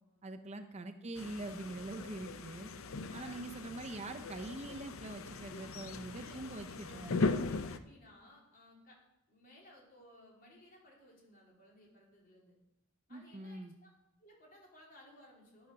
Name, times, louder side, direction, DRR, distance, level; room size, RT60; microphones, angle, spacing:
voice 1, 0.2-2.7 3.1-7.2 13.1-13.7, right 2 dB, 30° right, 7 dB, 0.5 m, -44 dB
sound 1, 1.2-7.8, left 3 dB, 70° left, 0.6 m, -39 dB
sound 2, 2.7-7.8, left 1 dB, 5° left, 2.7 m, -63 dB
voice 2, 2.8-3.4 5.5-9.0 9.3-12.6 13.1-13.9 14.2-15.7, left 1 dB, 45° left, -3 dB, 3.5 m, -59 dB
10.5 x 7.1 x 6.1 m, 0.91 s
head